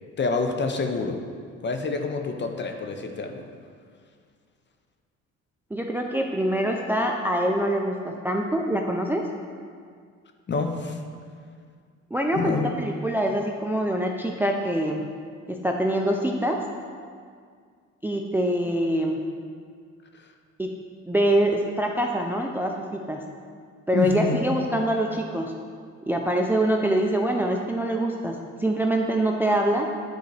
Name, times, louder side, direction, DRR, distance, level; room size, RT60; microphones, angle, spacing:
voice 1, 0.2-1.2 1.6-3.4 10.5-11.0 12.3-12.7 23.9-24.4, left 4 dB, 35° left, 5 dB, 0.7 m, -27 dB
voice 2, 5.7-9.3 12.1-15.0 15.5-16.6 18.0-19.2 20.6-20.7 21.1-23.2 23.9-25.5 26.0-29.9, right 1 dB, 5° right, 2 dB, 0.4 m, -24 dB
9.2 x 3.9 x 3.3 m, 2.1 s
cardioid pair, 90°, 30 cm